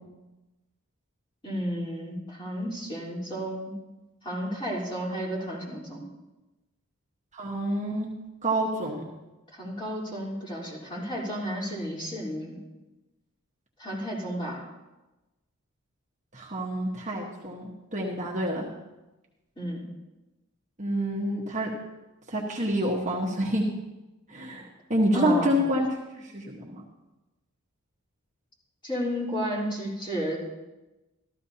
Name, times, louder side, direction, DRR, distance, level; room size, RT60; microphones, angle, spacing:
voice 1, 1.4-3.7 4.2-6.0 9.5-12.6 13.8-14.6 19.6-19.9 25.1-25.5 28.8-30.4, equal, 20° left, -5 dB, 3.8 m, -32 dB
voice 2, 7.3-8.1 8.4-9.0 16.3-18.6 20.8-21.7 22.3-23.7 24.3-25.9 26.1-26.7, equal, 35° right, -2 dB, 1.3 m, -27 dB
14.0 x 13.5 x 2.8 m, 1.1 s
head